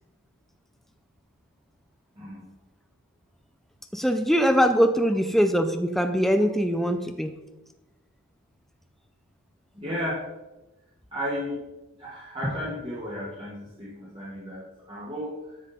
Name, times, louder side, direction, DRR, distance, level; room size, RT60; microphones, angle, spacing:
voice 1, 2.2-2.5 9.7-10.2 11.1-11.6 12.0-15.6, equal, 25° right, -7 dB, 1.7 m, -33 dB
voice 2, 3.9-7.4, equal, ahead, 6 dB, 0.5 m, -22 dB
9.8 x 7.3 x 4.2 m, 1.0 s
head